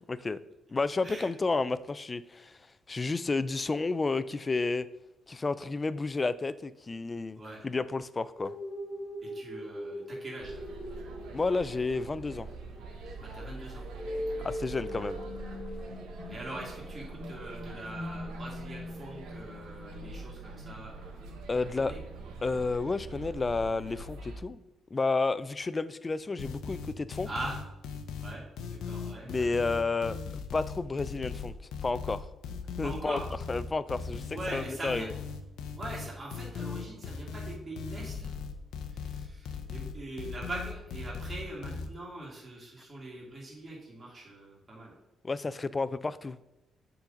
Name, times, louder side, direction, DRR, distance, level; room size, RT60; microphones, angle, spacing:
voice 1, 0.1-0.4 0.7-2.5 2.9-4.9 5.3-8.5 11.3-12.5 14.4-15.2 21.5-21.9 22.4-24.6 24.9-27.3 29.3-30.2 30.5-31.5 31.8-32.3 32.8-33.2 33.5-35.1 45.2-46.4, left 3 dB, 25° left, 15 dB, 0.4 m, -31 dB
sound 1, 8.4-21.5, left 1 dB, 5° right, 2.1 m, -42 dB
voice 2, 9.3-10.7 13.2-13.8 14.3-14.5 16.3-21.3 21.6-22.0 27.3-27.6 28.2-29.5 32.8-33.3 34.3-35.1 35.8-38.3 38.9-44.9, right 2 dB, 30° right, -5 dB, 2.2 m, -42 dB
sound 2, 10.4-24.4, right 3 dB, 85° right, 1.0 m, -44 dB
sound 3, 26.4-41.9, left 5 dB, 80° left, 0.7 m, -38 dB
7.2 x 3.9 x 5.1 m, 0.94 s
cardioid pair, 90°, 0 cm